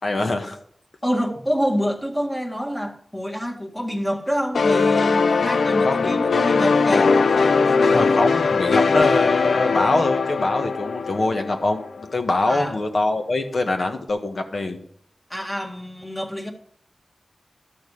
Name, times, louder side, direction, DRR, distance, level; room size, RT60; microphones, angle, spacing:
voice 1, 0.0-0.6 5.8-6.2 7.8-14.9, left 2 dB, 60° left, 1.5 m, -24 dB
voice 2, 1.0-7.2 7.7-7.8 12.5-12.8 15.3-16.5, equal, 10° left, 1.8 m, -27 dB
sound 1, 4.5-12.0, left 4 dB, 90° left, 0.4 m, -20 dB
13.0 x 6.6 x 4.9 m
wide cardioid pair, 85°, 0 cm